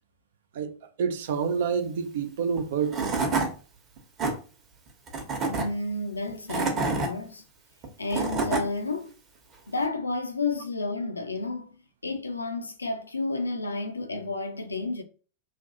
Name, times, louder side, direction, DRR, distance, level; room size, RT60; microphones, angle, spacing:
voice 1, 0.5-3.2, right 6 dB, 55° right, 0.4 m, -28 dB
Tools / Wood, 2.6-2.7 2.9-3.5 4.0-4.3 5.1-5.6 6.3-7.1 7.8-8.6, right 3 dB, 30° right, 1.0 m, -27 dB
voice 2, 5.5-7.4 8.0-9.1 9.7-11.7 12.0-15.0, left 3 dB, 80° left, 0.5 m, -31 dB
3.1 x 2.6 x 2.7 m
figure-of-eight pair, 90°, 0 cm